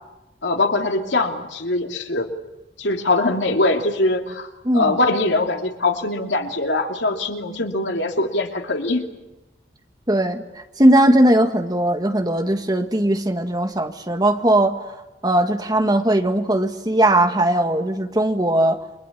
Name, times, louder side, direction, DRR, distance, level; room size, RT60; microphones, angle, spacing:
voice 1, 0.4-2.3 2.8-4.5 4.7-9.1, left 2 dB, 90° left, 4 dB, 2.8 m, -22 dB
voice 2, 10.1-14.8 15.2-18.8, right 1 dB, 20° right, 6 dB, 1.7 m, -19 dB
29.5 x 23.5 x 8.5 m, 1.0 s
head